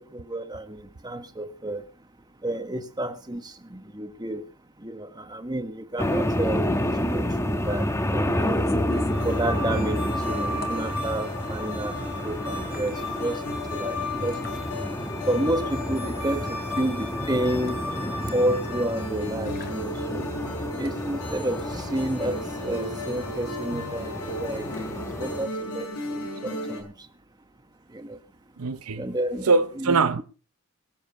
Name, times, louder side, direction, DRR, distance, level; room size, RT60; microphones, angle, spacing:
voice 1, 0.1-1.8 2.4-4.4 4.8-7.9 8.1-8.7 9.2-11.9 12.2-14.4 15.3-17.8 18.2-20.3 20.8-26.9 27.9-28.2 29.0-29.5 29.8-30.2, right 1 dB, 20° right, 1.2 m, -30 dB
sound 1, 6.0-25.5, left 1 dB, 15° left, 1.2 m, -30 dB
sound 2, 8.4-25.9, left 2 dB, 45° left, 2.2 m, -46 dB
sound 3, 8.9-26.8, left 1 dB, 90° left, 6.3 m, -35 dB
voice 2, 28.6-29.1 29.4-30.2, right 4 dB, 75° right, 0.8 m, -22 dB
22.0 x 7.5 x 5.6 m
head